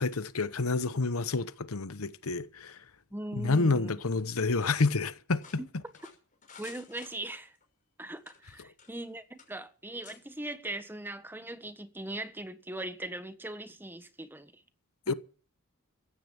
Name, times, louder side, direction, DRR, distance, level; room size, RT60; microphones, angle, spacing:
voice 1, 0.0-2.8 3.3-5.4 15.1-15.2, left 3 dB, 80° left, 1.0 m, -29 dB
voice 2, 3.1-4.0 5.6-5.7 6.6-7.5 8.0-14.6 15.1-15.2, right 1 dB, 10° right, 1.3 m, -40 dB
sound 1, 5.4-7.6 8.2-9.1 9.4-9.5 10.0-10.2, left 6 dB, 40° left, 6.1 m, -52 dB
15.5 x 11.0 x 7.2 m
head